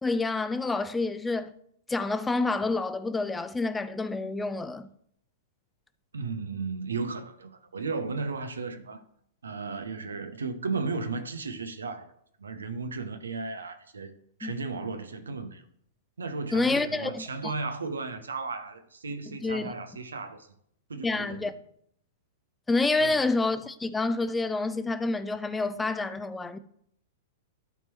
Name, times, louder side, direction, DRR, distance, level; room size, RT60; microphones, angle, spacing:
voice 1, 0.0-1.5 1.9-4.9 14.4-14.5 16.5-17.5 19.3-19.7 21.0-21.5 22.7-26.6, left 3 dB, 10° left, 0.5 m, -28 dB
voice 2, 6.1-9.0 9.4-12.1 12.4-14.1 14.4-15.6 16.2-20.5 20.9-21.5 23.0-23.2, right 4 dB, 75° right, 0.8 m, -35 dB
11.5 x 4.5 x 3.0 m
figure-of-eight pair, 100°, 0 cm